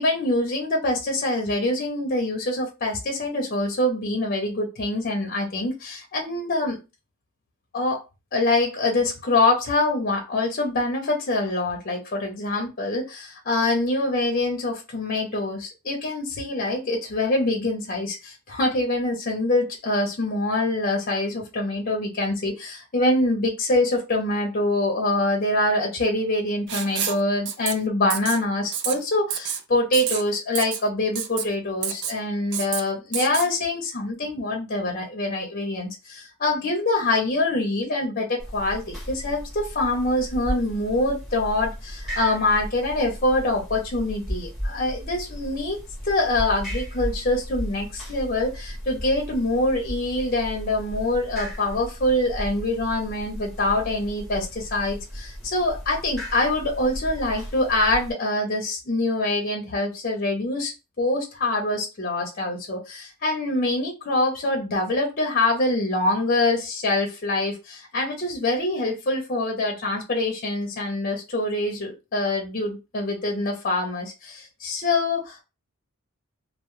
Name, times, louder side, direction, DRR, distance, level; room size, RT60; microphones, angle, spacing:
voice 1, 0.0-6.8 7.7-8.0 8.3-45.8 46.0-75.4, left 2 dB, 40° left, 2 dB, 0.5 m, -25 dB
Writing, 26.7-27.2 27.5-27.7 28.1-28.4 28.7-28.9 29.3-29.6 29.9-30.2 30.5-30.8 31.2-31.4 31.8-32.2 32.5-32.8 33.1-33.5, right 8 dB, 50° right, 0.3 m, -28 dB
sound 1, 38.4-58.1, equal, ahead, 0.7 m, -35 dB
2.1 x 2.0 x 3.0 m, 0.28 s
head